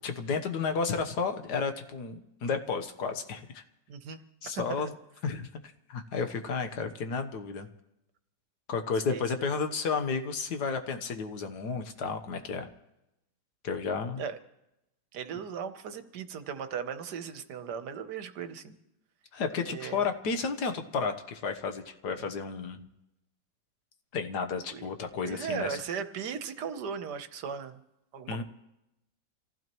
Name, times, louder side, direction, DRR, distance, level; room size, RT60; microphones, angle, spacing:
voice 1, 0.0-3.6 4.4-4.9 5.2-5.6 5.9-7.7 8.7-12.7 13.6-14.2 19.3-22.9 24.1-25.8 28.3-28.4, left 5 dB, 70° left, 7 dB, 1.6 m, -32 dB
voice 2, 3.9-4.5 4.8-4.9 9.1-9.2 14.2-14.4 15.1-18.7 19.6-20.0 24.7-24.9 25.2-27.8 28.1-28.4, right 7 dB, 70° right, 9 dB, 1.5 m, -37 dB
27.0 x 15.5 x 3.0 m, 0.89 s
omnidirectional pair, 1.9 m